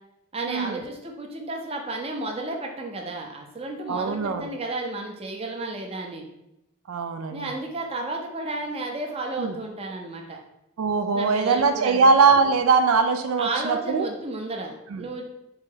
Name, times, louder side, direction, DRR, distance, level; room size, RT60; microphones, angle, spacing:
voice 1, 0.3-6.2 7.3-10.4 11.1-12.1 13.4-15.3, right 2 dB, 30° right, 2 dB, 0.5 m, -32 dB
voice 2, 3.9-4.5 6.9-7.5 9.4-9.6 10.8-14.1 14.9-15.1, right 4 dB, 80° right, 7 dB, 0.4 m, -21 dB
4.0 x 2.7 x 3.8 m, 0.86 s
head